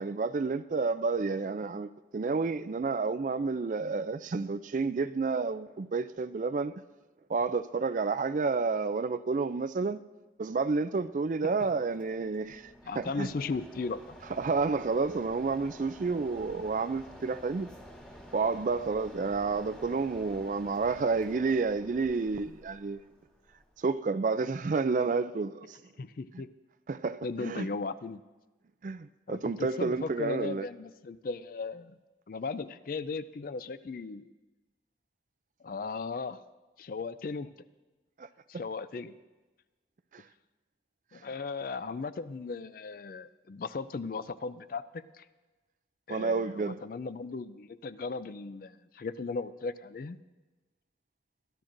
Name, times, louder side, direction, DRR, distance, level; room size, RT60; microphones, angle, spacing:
voice 1, 0.0-6.7 7.3-10.0 10.4-13.3 14.4-17.7 18.3-23.1 23.8-25.8 26.9-27.7 28.8-30.7 38.2-38.3 40.1-40.2 46.1-46.8, right 4 dB, 45° right, 0.4 m, -30 dB
Mechanisms, 11.6-24.0, equal, 5° left, 1.5 m, -51 dB
voice 2, 12.9-14.2 26.0-26.5 27.2-28.2 29.3-32.0 32.3-34.3 35.6-36.4 36.8-37.5 38.5-39.1 41.1-45.2 46.1-50.2, left 4 dB, 50° left, 0.4 m, -37 dB
21.5 x 12.0 x 2.6 m
head